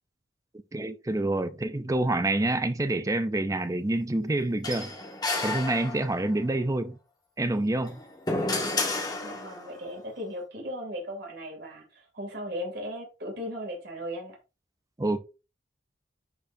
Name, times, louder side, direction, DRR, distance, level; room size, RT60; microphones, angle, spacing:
voice 1, 0.7-4.9 5.4-7.0 7.4-8.0 15.0-15.2, right 2 dB, 15° right, 0.5 m, -27 dB
sound 1, 4.6-6.4 7.7-9.8, left 2 dB, 20° left, 1.8 m, -31 dB
voice 2, 9.2-14.4, equal, 60° right, 2.8 m, -37 dB
10.5 x 4.6 x 2.7 m
head